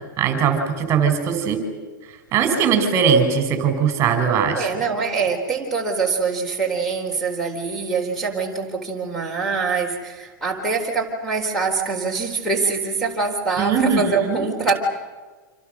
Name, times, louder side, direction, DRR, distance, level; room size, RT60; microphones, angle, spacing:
voice 1, 0.2-1.6 2.3-4.7 13.6-14.4, right 6 dB, 25° right, 7 dB, 4.5 m, -20 dB
voice 2, 4.5-14.7, right 4 dB, ahead, 2 dB, 4.0 m, -24 dB
28.5 x 27.0 x 6.5 m, 1.3 s
supercardioid pair, 160°, 11 cm